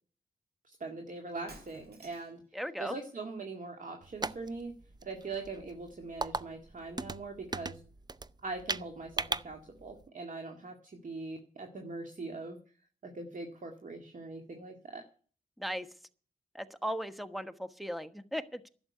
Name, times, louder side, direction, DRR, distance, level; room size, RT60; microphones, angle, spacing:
voice 1, 0.6-2.4 2.8-4.8 5.0-7.8 8.4-12.6 13.0-15.0, right 3 dB, 50° right, 3 dB, 2.1 m, -42 dB
Shatter, 1.5-2.5, right 2 dB, 75° right, 5.2 m, -53 dB
voice 2, 2.5-2.9 15.6-15.9 16.5-18.7, equal, ahead, 9 dB, 1.3 m, -37 dB
sound 1, 4.0-10.1, right 3 dB, 25° right, 0.6 m, -38 dB
11.5 x 7.8 x 9.6 m, 0.42 s
cardioid pair, 65°, 17 cm